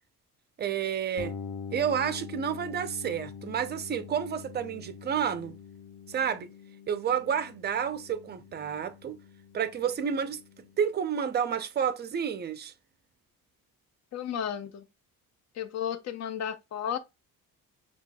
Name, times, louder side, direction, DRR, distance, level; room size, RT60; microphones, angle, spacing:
voice 1, 0.6-1.4 1.7-5.6 6.1-6.5 6.9-9.2 9.5-10.4 10.8-12.7, right 8 dB, 30° right, 0.5 m, -30 dB
sound 1, 1.2-10.9, left 5 dB, 80° left, 1.0 m, -44 dB
voice 2, 14.1-14.9 15.6-17.0, left 9 dB, 50° left, 0.6 m, -33 dB
5.7 x 2.3 x 2.2 m
cardioid pair, 110°, 35 cm